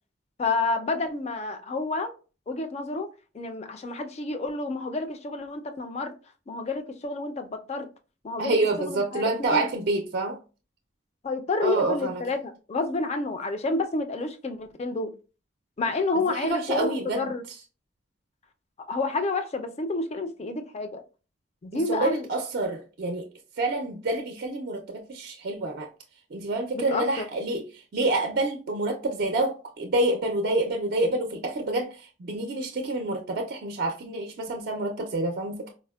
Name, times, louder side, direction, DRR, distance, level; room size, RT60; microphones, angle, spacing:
voice 1, 0.4-2.2 2.5-6.1 6.5-7.9 8.2-9.7 11.2-15.1 15.8-17.4 18.9-21.0 21.6-22.3 26.7-27.3, left 3 dB, 35° left, 0.4 m, -29 dB
voice 2, 8.4-10.4 11.6-12.2 16.3-17.3 21.7-23.3 23.6-25.9 26.3-35.7, right 2 dB, 55° right, 0.4 m, -28 dB
4.1 x 2.1 x 2.2 m
head